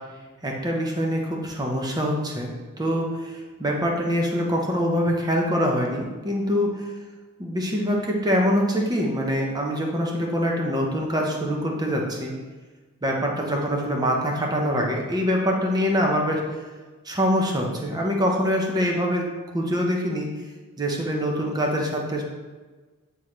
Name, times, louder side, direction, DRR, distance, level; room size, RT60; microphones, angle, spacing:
voice 1, 0.4-2.5 2.8-3.3 3.6-6.7 7.4-12.3 13.0-16.4 17.0-19.3 19.5-20.3 20.8-22.2, equal, 20° right, 0 dB, 0.9 m, -24 dB
9.0 x 3.7 x 3.2 m, 1.3 s
head